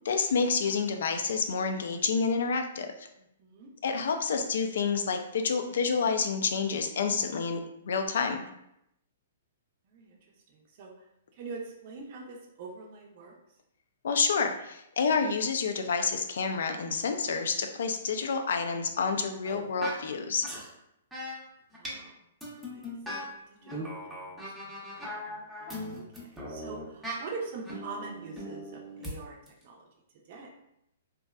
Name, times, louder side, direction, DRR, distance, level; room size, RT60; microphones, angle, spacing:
voice 1, 0.1-2.9 3.8-7.6 7.9-8.4 14.0-20.5, left 5 dB, 70° left, 6 dB, 0.3 m, -28 dB
voice 2, 3.1-3.7 9.9-10.2 10.5-10.9 11.3-13.4 21.7-22.2 22.6-29.4 29.6-29.9 30.2-30.5, right 4 dB, 50° right, -1 dB, 0.5 m, -44 dB
sound 1, 19.4-20.0 20.4-20.7 21.1-21.4 21.7-22.0 22.4-23.3 23.6-27.2 27.6-29.1 29.5-29.6, equal, 5° right, 0.6 m, -39 dB
2.6 x 2.1 x 2.3 m, 0.80 s
hypercardioid pair, 140°, 0 cm